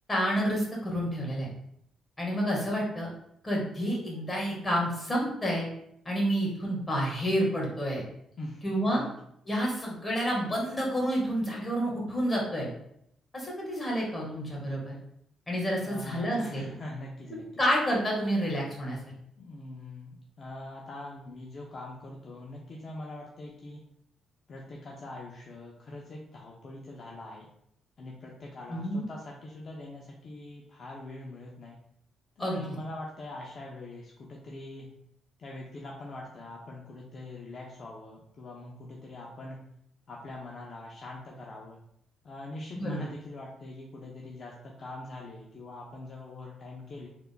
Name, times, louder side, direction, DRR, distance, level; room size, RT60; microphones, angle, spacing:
voice 1, 0.1-1.5 2.2-3.1 3.4-5.6 6.0-8.0 8.6-9.0 9.4-12.7 13.3-14.9 15.5-16.7 17.6-19.0 28.7-29.0 32.4-32.7 42.7-43.0, equal, 20° left, -3 dB, 1.4 m, -29 dB
voice 2, 8.4-9.1 15.8-17.5 19.4-23.8 24.5-27.5 28.0-31.8 32.4-34.9 35.4-39.6 40.1-41.8 42.2-47.1, left 2 dB, 50° left, -2 dB, 0.6 m, -43 dB
3.6 x 3.4 x 2.2 m, 0.73 s
cardioid pair, 90°, 0 cm